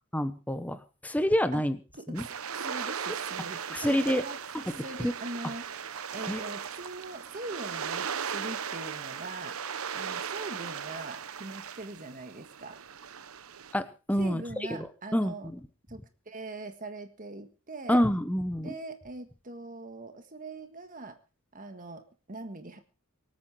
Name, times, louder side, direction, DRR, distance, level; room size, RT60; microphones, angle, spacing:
voice 1, 0.1-1.8 2.1-2.2 3.7-4.2 4.8-5.1 6.3-6.4 13.7-14.4 15.1-15.6 17.9-18.7, equal, 5° left, 11 dB, 1.0 m, -27 dB
voice 2, 1.9-9.6 9.9-12.8 14.2-15.5 15.9-18.0 18.6-21.2 21.5-22.8, right 2 dB, 40° right, 7 dB, 1.7 m, -42 dB
sound 1, 2.1-13.7, right 7 dB, 80° right, 0.9 m, -37 dB
25.0 x 8.8 x 4.8 m, 0.35 s
head